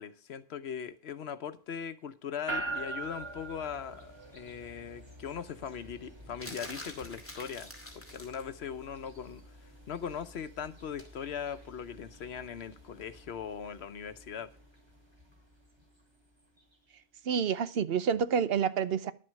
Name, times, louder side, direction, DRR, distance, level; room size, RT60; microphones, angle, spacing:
voice 1, 0.0-9.4 9.9-14.5, left 7 dB, 80° left, 1.1 m, -40 dB
sound 1, 2.5-16.8, right 2 dB, 25° right, 2.7 m, -45 dB
sound 2, 6.4-8.5 11.0-11.2, left 1 dB, 10° left, 2.4 m, -45 dB
voice 2, 17.3-19.1, right 7 dB, 70° right, 1.0 m, -28 dB
11.0 x 7.6 x 6.3 m
omnidirectional pair, 1.1 m